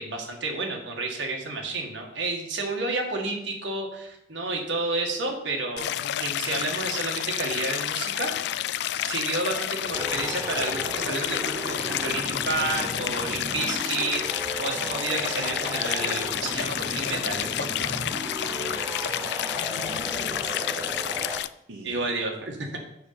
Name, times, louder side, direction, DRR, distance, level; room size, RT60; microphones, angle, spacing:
voice 1, 0.0-5.9 6.2-8.3 9.0-17.9 21.8-22.7, right 2 dB, 70° right, 1 dB, 1.9 m, -30 dB
Stream, 5.8-21.5, left 11 dB, 60° left, 0.3 m, -30 dB
sound 1, 9.9-21.4, right 1 dB, 15° right, 0.5 m, -36 dB
voice 2, 18.6-20.7 21.7-22.1, right 1 dB, 85° right, 0 dB, 1.0 m, -45 dB
6.7 x 5.4 x 6.9 m, 0.80 s
head